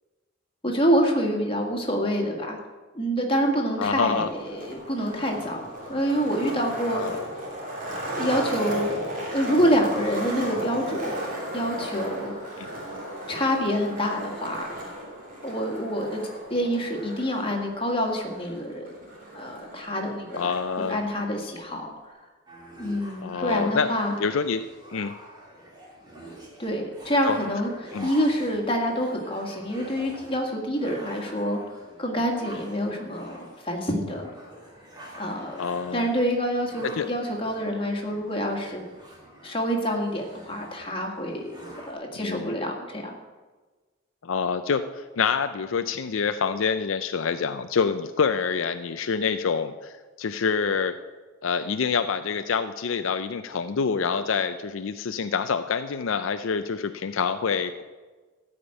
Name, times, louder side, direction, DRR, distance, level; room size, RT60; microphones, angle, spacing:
voice 1, 0.6-2.6 2.9-7.2 8.2-8.9 9.3-11.2 11.5-12.3 13.3-14.7 15.4-16.2 16.5-18.9 19.3-20.5 20.9-21.9 22.8-24.1 26.6-31.6 32.0-34.3 35.2-35.6 35.9-38.9 39.4-41.6 41.9-43.1, equal, 25° left, 1 dB, 1.8 m, -27 dB
voice 2, 3.8-4.3 6.9-7.3 12.6-12.7 20.3-21.0 23.2-23.9 24.2-24.6 24.9-25.1 27.2-27.4 27.9-28.1 35.6-36.1 37.0-37.1 42.2-42.5 44.2-50.9 51.4-57.8, left 5 dB, 75° left, 9 dB, 0.5 m, -26 dB
Skateboard, 3.8-20.8, right 1 dB, 40° right, 2.7 m, -35 dB
sound 1, 22.5-41.9, right 1 dB, 20° right, 2.4 m, -46 dB
13.5 x 5.2 x 8.9 m, 1.3 s
head